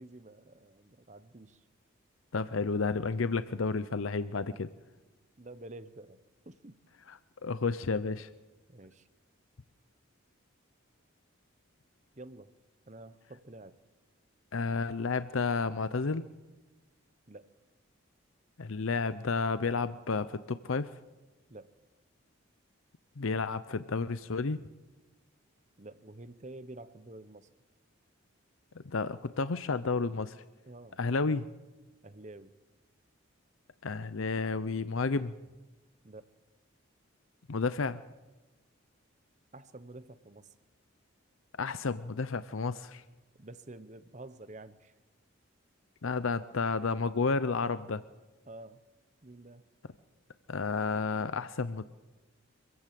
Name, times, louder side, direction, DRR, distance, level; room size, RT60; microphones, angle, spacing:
voice 1, 0.0-1.6 5.4-6.2 6.5-6.8 8.7-9.1 12.2-12.5 12.9-13.7 17.3-17.5 21.5-21.7 25.8-27.5 30.7-31.0 32.0-32.5 36.0-36.2 39.5-40.5 43.4-44.9 48.5-48.8 49.2-49.6, right 2 dB, 35° right, 13 dB, 1.0 m, -49 dB
voice 2, 2.3-4.7 7.1-8.3 14.5-16.2 18.6-20.9 23.2-24.6 28.8-30.4 31.0-31.5 33.8-35.3 37.5-38.0 41.6-43.0 46.0-48.0 50.5-51.8, left 4 dB, 75° left, 13 dB, 0.7 m, -31 dB
26.0 x 16.0 x 7.7 m, 1.2 s
head